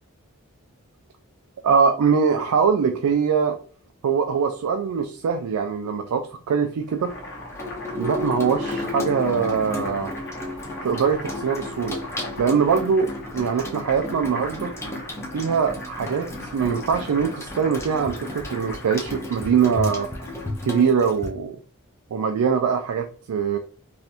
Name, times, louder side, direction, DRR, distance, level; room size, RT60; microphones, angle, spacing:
voice 1, 1.6-3.6 4.0-7.1 8.0-10.1 10.8-12.0 12.4-14.7 15.3-20.1 20.6-21.6 22.1-23.6, right 6 dB, 85° right, 5 dB, 0.4 m, -22 dB
Boiling, 6.8-20.7, left 1 dB, 55° left, 0.9 m, -39 dB
Water tap faucet / Sink (filling or washing), 7.5-21.3, left 2 dB, 10° left, 0.4 m, -33 dB
3.2 x 2.5 x 2.8 m, 0.41 s
head